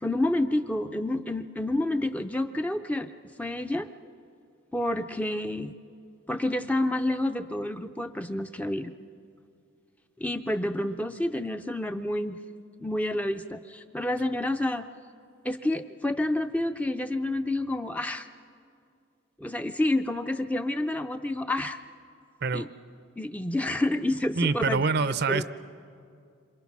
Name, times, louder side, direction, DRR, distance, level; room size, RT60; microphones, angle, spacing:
voice 1, 0.0-3.1 3.4-3.9 4.7-5.7 6.3-8.9 10.2-12.4 12.8-14.8 15.4-18.3 19.4-21.8 22.5-22.7 23.2-24.9 25.3-25.4, left 1 dB, 5° left, 8 dB, 0.5 m, -29 dB
voice 2, 24.4-25.4, right 4 dB, 50° right, 14 dB, 0.6 m, -25 dB
27.5 x 26.5 x 6.0 m, 2.4 s
head